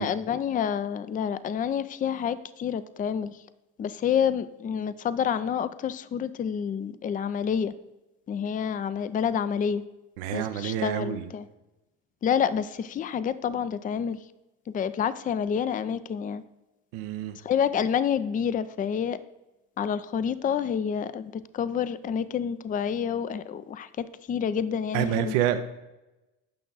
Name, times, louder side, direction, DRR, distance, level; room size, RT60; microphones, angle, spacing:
voice 1, 0.0-3.4 3.8-7.7 8.3-9.8 10.3-11.5 12.2-14.2 14.7-16.4 17.4-19.2 19.8-25.4, left 8 dB, 25° left, 15 dB, 0.4 m, -28 dB
voice 2, 10.2-11.3 16.9-17.4 24.9-25.6, right 11 dB, 80° right, 9 dB, 0.7 m, -28 dB
8.7 x 5.8 x 3.9 m, 1.0 s
supercardioid pair, 80°, 35 cm